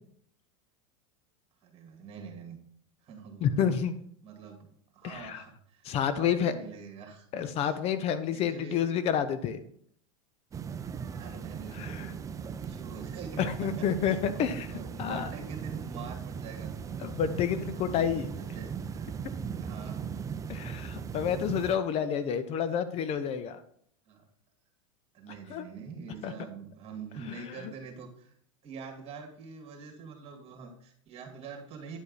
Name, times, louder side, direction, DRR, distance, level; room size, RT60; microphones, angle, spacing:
voice 1, 1.6-2.6 3.0-3.7 4.2-4.7 4.9-5.9 6.2-7.7 8.3-8.8 11.1-17.2 17.6-17.8 18.3-19.0 19.6-20.1 24.1-24.2 25.1-28.3 28.6-32.0, right 5 dB, 40° right, 2 dB, 2.4 m, -45 dB
voice 2, 3.4-4.0 5.0-5.4 5.8-6.5 7.3-9.6 11.7-12.1 13.4-15.3 17.0-18.4 20.5-23.6 25.5-25.7 26.2-26.3 27.3-27.7, left 8 dB, 40° left, 12 dB, 0.6 m, -29 dB
sound 1, 10.5-21.7, right 6 dB, 20° right, 0.5 m, -38 dB
9.8 x 5.3 x 4.1 m, 0.64 s
hypercardioid pair, 110°, 16 cm